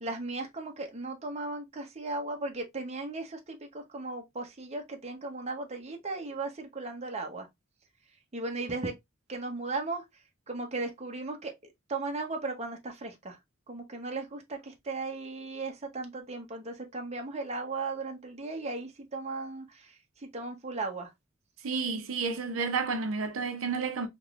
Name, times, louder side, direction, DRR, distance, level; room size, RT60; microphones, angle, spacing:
voice 1, 0.0-7.5 8.3-8.9 9.3-10.0 10.5-11.5 11.9-13.4 13.7-19.9 20.2-21.1, right 3 dB, 30° right, 0.7 m, -36 dB
voice 2, 21.6-24.1, right 4 dB, 80° right, 0.6 m, -31 dB
3.5 x 3.0 x 2.4 m
head